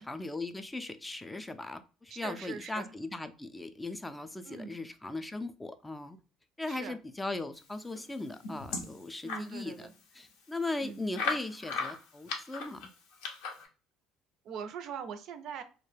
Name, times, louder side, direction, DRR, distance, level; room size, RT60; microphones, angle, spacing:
voice 1, 0.0-6.2 6.6-9.9 10.1-12.9, left 2 dB, 15° left, 9 dB, 0.3 m, -38 dB
voice 2, 2.2-2.9 4.5-4.8 6.7-7.0 9.2-9.9 10.8-11.0 14.5-15.6, right 7 dB, 65° right, 10 dB, 0.4 m, -42 dB
sound 1, 7.9-9.5 10.0-10.1 10.3-10.4 11.1-13.7, left 4 dB, 85° left, 0.6 m, -37 dB
2.3 x 2.1 x 3.1 m, 0.36 s
supercardioid pair, 90°, 0 cm